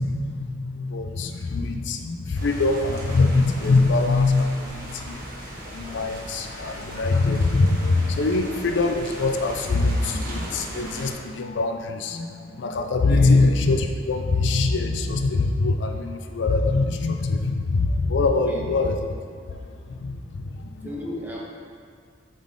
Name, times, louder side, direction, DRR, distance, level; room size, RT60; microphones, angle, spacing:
voice 1, 0.0-5.3 5.7-19.1 19.5-20.9, left 3 dB, 75° left, 6 dB, 0.4 m, -23 dB
sound 1, 2.3-11.1, right 1 dB, 50° right, 1.3 m, -38 dB
voice 2, 13.0-13.4 18.4-18.7 20.8-21.4, left 1 dB, 10° right, -5 dB, 1.1 m, -35 dB
8.5 x 4.2 x 3.7 m, 2.1 s
head